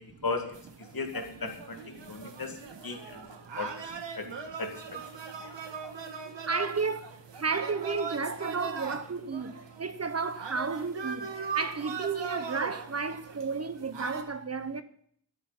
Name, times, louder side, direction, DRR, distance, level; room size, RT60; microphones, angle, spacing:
voice 1, 0.2-2.6 2.8-3.2 3.6-3.8 4.2-4.3 4.6-4.7, left 3 dB, 55° left, 2.1 m, -36 dB
sound 1, 0.5-14.2, right 6 dB, 80° right, 1.6 m, -40 dB
voice 2, 1.9-2.8 3.1-3.5 3.9-4.0 4.9-5.0 6.4-14.8, right 4 dB, 35° right, 0.7 m, -33 dB
13.0 x 10.5 x 5.8 m
wide cardioid pair, 125°, 42 cm